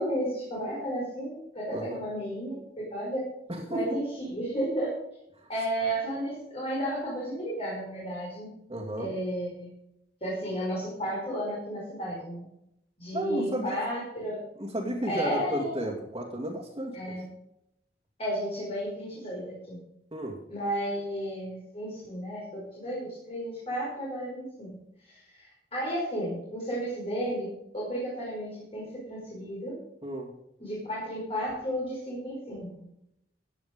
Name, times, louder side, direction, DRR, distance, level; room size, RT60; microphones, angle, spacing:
voice 1, 0.0-3.2 3.7-4.9 5.5-8.5 9.0-9.7 10.2-12.5 13.0-14.4 15.1-15.7 16.9-17.2 18.2-19.8 20.5-24.7 25.0-25.4 25.7-27.5 27.7-29.8 30.6-32.7, equal, 35° left, -5 dB, 5.3 m, -33 dB
voice 2, 1.7-2.0 3.5-3.9 5.4-5.5 8.7-9.1 13.1-13.8 14.6-17.0 20.1-20.4 30.0-30.3, right 1 dB, 25° right, -4 dB, 2.5 m, -33 dB
16.0 x 9.3 x 5.3 m, 0.81 s
head